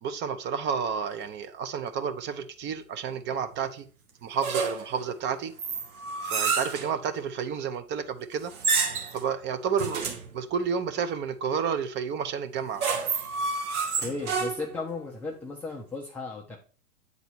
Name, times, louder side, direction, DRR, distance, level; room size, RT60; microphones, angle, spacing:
voice 1, 0.0-3.9 4.2-5.5 6.2-8.5 9.1-10.1 10.3-12.8, right 6 dB, 25° right, 0.6 m, -30 dB
sound 1, 4.4-5.0 5.6-6.9 8.5-9.2 9.8-10.3 12.5-14.8, right 5 dB, 80° right, 1.7 m, -29 dB
voice 2, 14.0-16.6, left 3 dB, 5° left, 0.3 m, -35 dB
8.2 x 4.1 x 4.5 m
hypercardioid pair, 120°, 44 cm